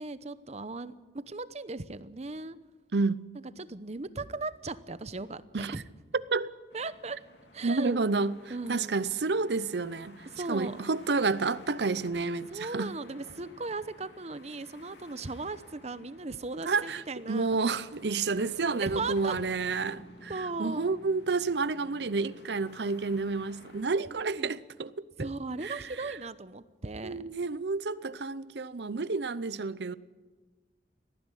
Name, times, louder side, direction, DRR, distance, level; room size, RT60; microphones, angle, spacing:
voice 1, 0.0-2.6 3.6-5.8 6.7-7.2 7.5-8.0 8.5-9.1 10.2-10.8 12.5-17.6 18.8-19.4 20.3-20.9 24.1-24.6 25.2-27.2, right 3 dB, 40° right, 0.9 m, -37 dB
voice 2, 2.9-3.2 5.5-5.7 6.3-6.5 7.6-8.4 8.7-12.9 16.7-20.3 20.6-24.9 25.2-25.3 25.6-25.8 27.0-29.9, right 4 dB, 70° right, 0.7 m, -30 dB
sound 1, 6.7-23.8, left 1 dB, 80° left, 2.9 m, -53 dB
18.5 x 14.5 x 10.0 m
head